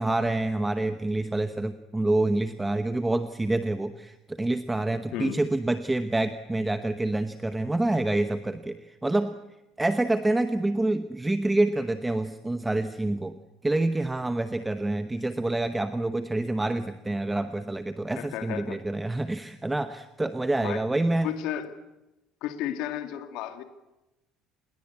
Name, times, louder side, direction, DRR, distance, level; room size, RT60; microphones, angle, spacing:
voice 1, 0.0-9.3 9.8-21.3, right 2 dB, 10° right, 9 dB, 1.0 m, -27 dB
voice 2, 5.1-5.4 18.1-18.8 20.6-20.8 21.2-21.8 22.4-23.6, left 11 dB, 65° left, 8 dB, 2.3 m, -33 dB
28.5 x 21.5 x 8.5 m, 0.99 s
cardioid pair, 165°, 0 cm